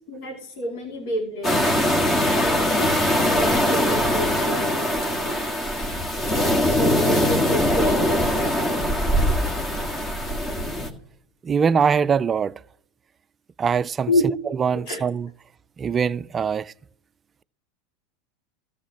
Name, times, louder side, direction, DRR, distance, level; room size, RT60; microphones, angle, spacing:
voice 1, 0.0-1.8 2.4-5.5 6.6-8.5 14.1-14.3 14.9-15.0, left 1 dB, 65° left, 2.5 m, -29 dB
sound 1, 1.4-10.9, equal, 25° left, 1.6 m, -22 dB
voice 2, 11.4-12.5 13.6-14.1 14.6-15.3 15.8-16.7, right 6 dB, 25° right, 0.3 m, -22 dB
13.5 x 8.0 x 2.9 m
hypercardioid pair, 95°, 0 cm